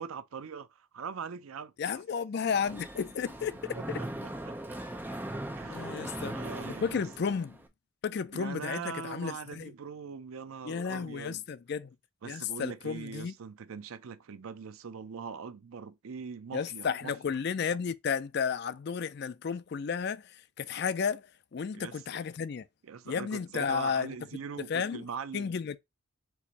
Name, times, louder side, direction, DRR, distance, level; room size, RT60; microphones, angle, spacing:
voice 1, 0.0-1.9 2.4-2.5 3.7-4.8 5.6-7.0 8.3-11.4 12.2-17.1 21.7-22.2 22.8-25.8, right 6 dB, 80° right, 0.5 m, -42 dB
voice 2, 1.8-4.0 5.7-6.4 6.8-7.6 8.0-9.7 10.6-11.9 12.2-13.3 16.5-22.6 23.1-24.1 24.7-25.0 25.3-25.8, left 6 dB, 50° left, 0.4 m, -33 dB
Mechanisms, 2.5-7.7, right 1 dB, 10° right, 0.5 m, -39 dB
4.6 x 2.5 x 4.0 m
head